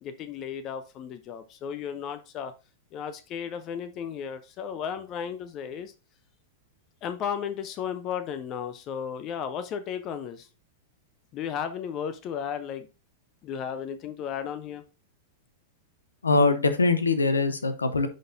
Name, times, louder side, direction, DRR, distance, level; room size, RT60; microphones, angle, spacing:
voice 1, 0.0-2.5 2.9-5.9 7.0-10.5 11.3-12.9 13.4-14.8, left 8 dB, 35° left, 11 dB, 0.7 m, -34 dB
voice 2, 16.2-18.1, left 3 dB, 80° left, 10 dB, 0.8 m, -22 dB
10.0 x 4.0 x 2.7 m, 0.31 s
figure-of-eight pair, 95°, 0 cm